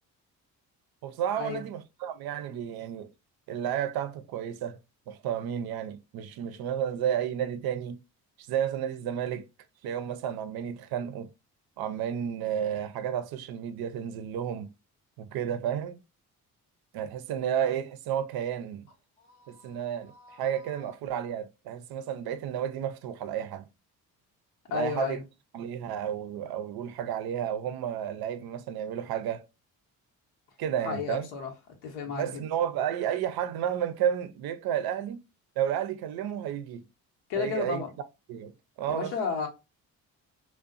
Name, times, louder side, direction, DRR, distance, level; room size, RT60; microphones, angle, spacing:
voice 1, 1.0-3.1 3.5-4.8 5.1-8.0 8.5-9.5 9.8-11.3 11.8-14.7 15.2-16.0 16.9-18.9 19.5-23.7 24.7-25.2 25.5-29.4 30.6-31.3 32.1-35.2 35.6-36.8 37.4-38.5 38.8-39.1, right 9 dB, 65° right, 0.5 m, -32 dB
voice 2, 19.2-19.8 20.1-20.7 24.7-25.2 30.8-31.5 31.8-32.4 37.3-37.9 38.9-39.5, left 6 dB, 85° left, 0.9 m, -33 dB
2.7 x 2.1 x 2.4 m
supercardioid pair, 60°, 40 cm